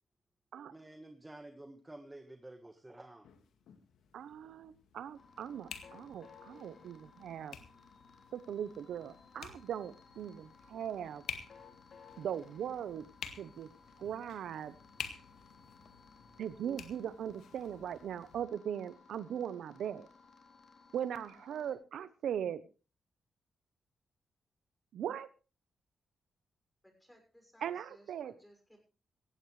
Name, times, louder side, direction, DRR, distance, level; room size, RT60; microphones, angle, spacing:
voice 1, 0.7-3.3, right 1 dB, 15° right, 8 dB, 1.4 m, -51 dB
sound 1, 3.2-18.4, left 7 dB, 90° left, 1.9 m, -51 dB
voice 2, 4.1-7.6 8.3-11.2 12.2-13.1 13.4-13.7 14.0-14.7 16.4-20.1 20.9-22.6 24.9-25.3 27.6-28.3, right 9 dB, 85° right, 15 dB, 0.9 m, -39 dB
sound 2, 5.1-21.7, left 5 dB, 60° left, 3.6 m, -60 dB
voice 3, 26.8-28.8, equal, 5° left, 4 dB, 6.2 m, -61 dB
18.0 x 15.5 x 3.3 m, 0.33 s
cardioid pair, 110°, 0 cm